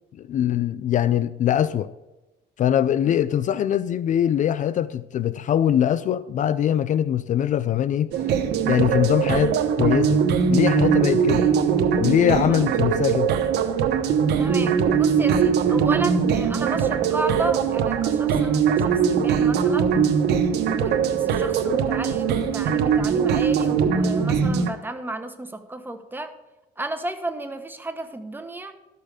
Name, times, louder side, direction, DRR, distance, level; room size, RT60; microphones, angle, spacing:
voice 1, 0.2-1.9 2.6-8.1 8.6-10.2 10.5-11.5 12.0-13.3, left 10 dB, 50° left, 15 dB, 0.4 m, -22 dB
sound 1, 8.1-24.7, right 7 dB, 75° right, 1.1 m, -21 dB
voice 2, 12.2-12.7 14.4-19.9 20.6-26.3 26.8-28.7, right 2 dB, 10° right, 7 dB, 1.2 m, -33 dB
12.5 x 6.8 x 5.0 m, 1.1 s
cardioid pair, 110°, 17 cm